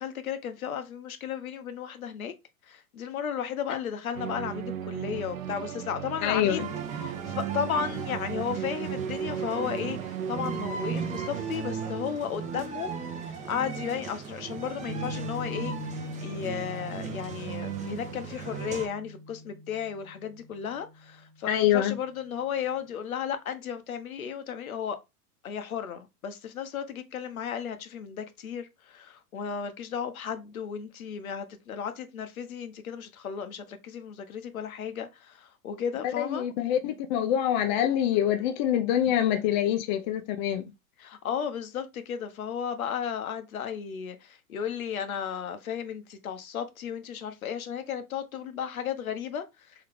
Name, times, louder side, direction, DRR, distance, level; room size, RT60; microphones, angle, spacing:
voice 1, 0.0-2.3 2.7-6.7 7.0-25.0 25.4-36.5 41.0-49.7, left 8 dB, 70° left, 1.0 m, -34 dB
sound 1, 4.1-11.4, right 8 dB, 65° right, 0.7 m, -36 dB
voice 2, 6.2-6.7 21.5-21.9 36.0-40.6, left 11 dB, 35° left, 0.5 m, -25 dB
sound 2, 6.6-18.9, right 7 dB, 15° right, 0.7 m, -37 dB
Piano, 14.9-21.5, left 1 dB, 40° right, 1.3 m, -41 dB
3.9 x 3.2 x 3.4 m
figure-of-eight pair, 105°, 45 cm